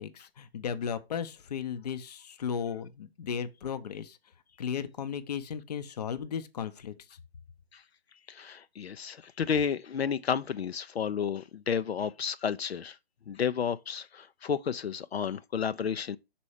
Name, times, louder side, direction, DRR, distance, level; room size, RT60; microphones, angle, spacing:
voice 1, 0.0-4.2 4.6-6.9, left 7 dB, 40° left, 0.7 m, -35 dB
voice 2, 8.3-13.0 13.3-16.2, left 7 dB, 80° left, 0.6 m, -31 dB
6.1 x 4.3 x 4.8 m
hypercardioid pair, 150°, 31 cm